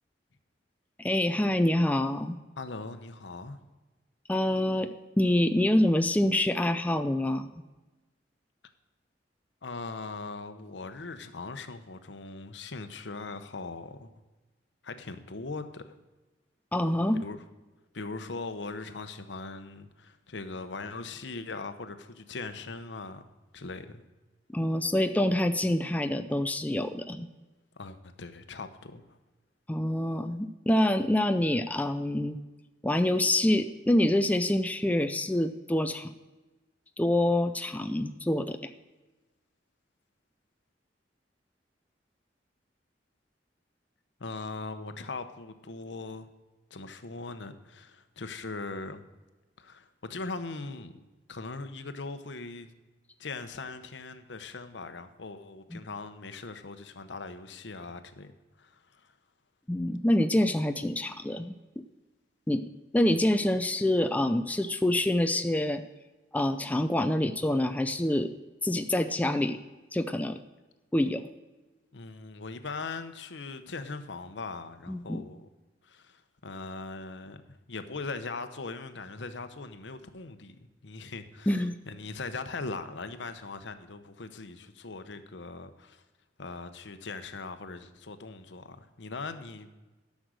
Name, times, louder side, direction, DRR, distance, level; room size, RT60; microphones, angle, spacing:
voice 1, 1.0-2.4 4.3-4.9 5.2-7.5 16.7-17.2 24.5-27.3 29.7-32.4 32.8-36.1 37.0-38.7 55.7-55.8 59.7-61.5 62.5-62.6 62.9-65.8 66.3-68.3 68.6-69.6 69.9-70.4 70.9-71.2 74.9-75.2 81.5-81.8, left 1 dB, 10° left, 0.4 m, -26 dB
voice 2, 2.6-3.6 9.6-14.1 14.8-15.8 17.1-17.4 17.9-23.2 23.5-24.0 27.8-29.2 44.2-46.3 46.7-49.0 49.6-51.0 51.3-52.7 53.2-58.3 58.6-59.1 71.9-75.5 75.8-80.6 80.8-86.0 86.4-89.7, left 3 dB, 75° left, 0.9 m, -40 dB
12.0 x 6.4 x 6.3 m
head